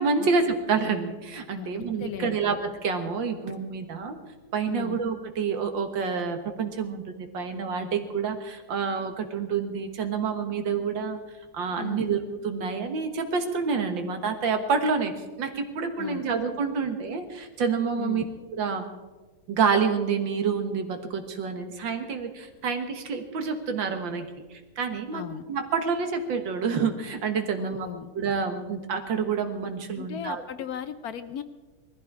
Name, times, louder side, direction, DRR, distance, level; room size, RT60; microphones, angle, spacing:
voice 1, 0.0-4.2 4.5-11.2 11.5-15.1 15.4-18.2 18.5-18.8 19.5-25.2 25.5-27.9 28.1-30.4, right 5 dB, 90° right, 6 dB, 2.2 m, -28 dB
voice 2, 2.0-2.4 4.7-5.0 11.8-12.1 16.0-16.2 18.0-18.2 25.1-25.5 27.6-28.1 30.0-31.4, left 10 dB, 65° left, 11 dB, 1.0 m, -36 dB
20.0 x 14.5 x 4.7 m, 1.2 s
omnidirectional pair, 2.0 m